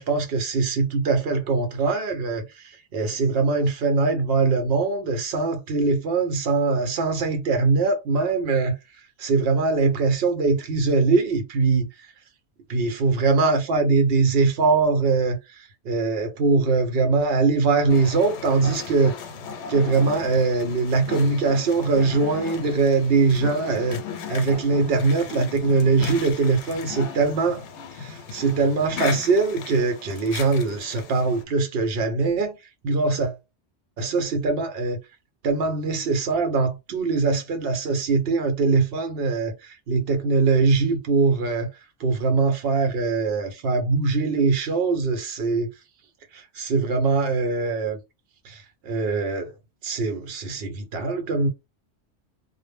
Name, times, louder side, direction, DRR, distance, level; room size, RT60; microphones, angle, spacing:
voice 1, 0.0-8.7 9.2-11.9 12.7-19.1 19.7-24.0 24.3-27.6 27.9-32.6 32.8-33.4 34.0-35.0 35.4-41.7 42.0-45.7 46.3-48.0 48.4-49.5 49.8-51.5, right 4 dB, 65° right, 0.8 m, -22 dB
sound 1, 17.9-31.4, left 6 dB, 80° left, 0.9 m, -36 dB
2.1 x 2.0 x 3.2 m
omnidirectional pair, 1.2 m